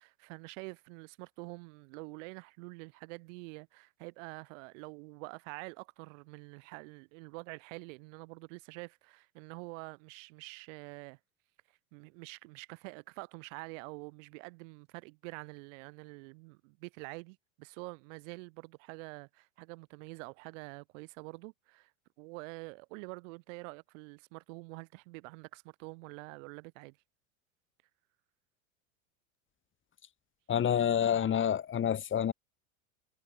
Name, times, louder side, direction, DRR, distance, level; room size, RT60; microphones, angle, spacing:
voice 1, 0.0-11.2 11.9-21.9 22.2-27.0, right 30 dB, 65° right, 7.7 m, -47 dB
voice 2, 30.5-32.3, left 9 dB, 30° left, 2.0 m, -28 dB
hypercardioid pair, 95°, 41 cm